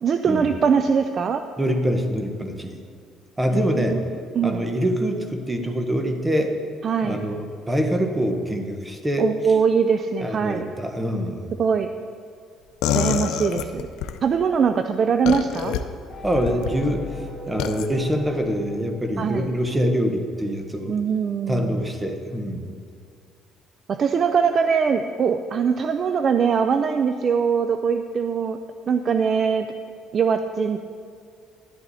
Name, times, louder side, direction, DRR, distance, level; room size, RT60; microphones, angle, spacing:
voice 1, 0.0-1.4 3.5-4.0 4.4-4.7 6.8-7.2 9.2-10.6 11.6-11.9 12.9-13.9 14.2-15.8 19.2-19.6 20.9-21.8 23.9-28.6 28.9-29.7 30.1-30.8, right 6 dB, 40° right, 8 dB, 0.4 m, -22 dB
voice 2, 1.6-2.7 3.4-4.1 4.4-6.5 7.0-9.3 10.2-11.5 16.2-20.9 21.5-22.7, equal, 10° right, 4 dB, 1.1 m, -25 dB
sound 1, 12.8-14.2 15.3-15.8 16.4-16.7 17.6-17.9, left 9 dB, 85° left, 0.6 m, -25 dB
sound 2, 16.1-19.8, left 2 dB, 20° left, 1.7 m, -39 dB
11.5 x 11.0 x 4.2 m, 2.2 s
cardioid pair, 130°, 0 cm